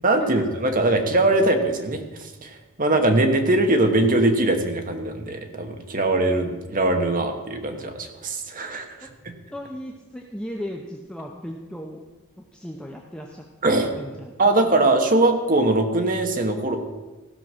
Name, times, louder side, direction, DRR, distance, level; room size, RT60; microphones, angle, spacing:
voice 1, 0.0-9.3 13.6-13.9 14.4-16.8, right 2 dB, 40° right, 5 dB, 1.2 m, -21 dB
voice 2, 9.5-12.0 12.4-13.4 13.9-14.3, equal, 5° left, 0 dB, 0.7 m, -36 dB
15.5 x 6.0 x 6.1 m, 1.2 s
head